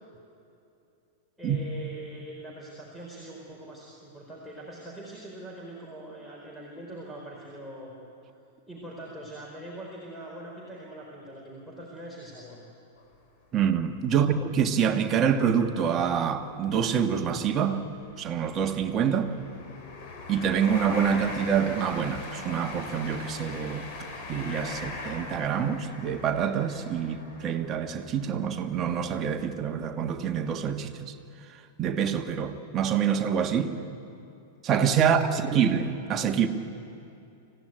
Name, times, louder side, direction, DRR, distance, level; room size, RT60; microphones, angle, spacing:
voice 1, 1.4-7.9 8.7-12.6 14.2-14.3 35.0-35.6, right 1 dB, 5° left, 4.3 m, -43 dB
sound 1, 13.0-13.2 13.7-13.8 15.0-15.1 15.4-15.6 16.2-28.9 29.5-29.7, left 3 dB, 40° left, 3.6 m, -41 dB
voice 2, 13.5-17.8 18.2-19.3 20.3-23.9 24.3-30.9 31.8-33.8 34.6-36.5, right 7 dB, 25° right, 1.6 m, -26 dB
25.5 x 16.0 x 9.2 m
figure-of-eight pair, 95°, 0 cm